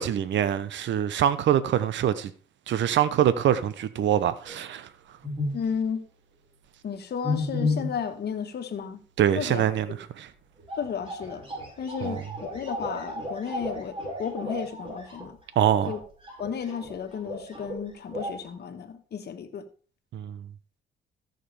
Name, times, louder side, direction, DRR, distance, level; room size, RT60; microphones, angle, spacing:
voice 1, 0.0-2.3 2.7-4.9 9.2-9.9 10.2-10.3 12.0-12.2 15.6-15.9 20.1-20.5, right 10 dB, 65° right, 0.8 m, -24 dB
sound 1, 4.5-4.6 5.2-5.7 7.2-8.0 10.3-10.4 10.6-17.8 18.1-18.5, left 2 dB, 25° right, 5.1 m, -33 dB
voice 2, 5.5-6.0 6.8-9.0 9.3-9.7 10.8-11.4 11.8-15.4 15.9-16.0 16.4-19.6, left 7 dB, 55° left, 1.4 m, -33 dB
14.0 x 6.6 x 3.4 m
cardioid pair, 90°, 20 cm